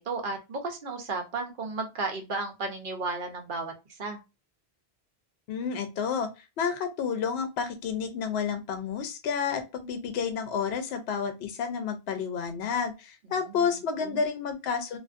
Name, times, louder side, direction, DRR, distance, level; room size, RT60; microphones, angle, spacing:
voice 1, 0.0-3.7 4.0-4.2 13.2-13.6 14.0-14.2, right 3 dB, 55° right, 3 dB, 0.9 m, -34 dB
voice 2, 5.5-6.3 6.6-15.0, left 6 dB, 75° left, 7 dB, 0.8 m, -30 dB
2.5 x 2.5 x 2.4 m, 0.26 s
omnidirectional pair, 1.1 m